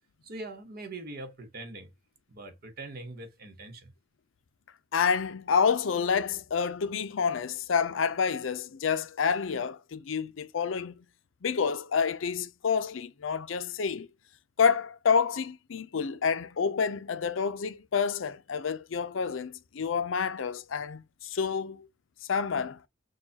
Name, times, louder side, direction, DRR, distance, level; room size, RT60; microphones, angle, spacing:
voice 1, 0.2-1.9 2.3-3.9, right 2 dB, 50° right, 1.1 m, -42 dB
voice 2, 4.9-11.0 11.4-14.1 14.6-21.9 22.3-22.8, left 6 dB, 80° left, 0.5 m, -28 dB
6.4 x 2.3 x 2.8 m
head